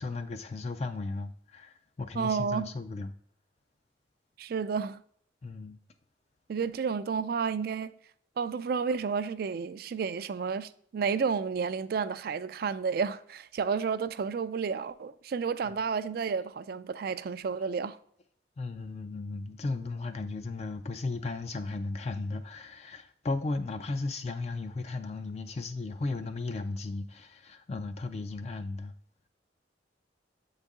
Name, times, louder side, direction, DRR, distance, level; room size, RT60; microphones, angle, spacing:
voice 1, 0.0-3.1 5.4-5.8 18.6-28.9, left 3 dB, 35° left, 0.3 m, -35 dB
voice 2, 2.2-2.7 4.4-5.0 6.5-7.9 8.4-18.0, right 5 dB, 55° right, 0.3 m, -31 dB
7.3 x 4.0 x 3.5 m
head